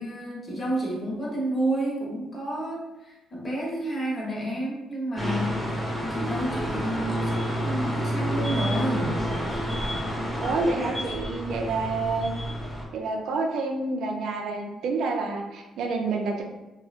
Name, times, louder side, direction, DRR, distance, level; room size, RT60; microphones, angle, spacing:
voice 1, 0.0-9.2, right 1 dB, 35° left, -4 dB, 0.9 m, -30 dB
sound 1, 5.2-12.8, equal, 5° left, 0.8 m, -29 dB
voice 2, 10.3-12.3 12.9-16.4, right 3 dB, 75° right, 2 dB, 0.4 m, -28 dB
2.7 x 2.0 x 2.4 m, 1.0 s
cardioid pair, 90°, 0 cm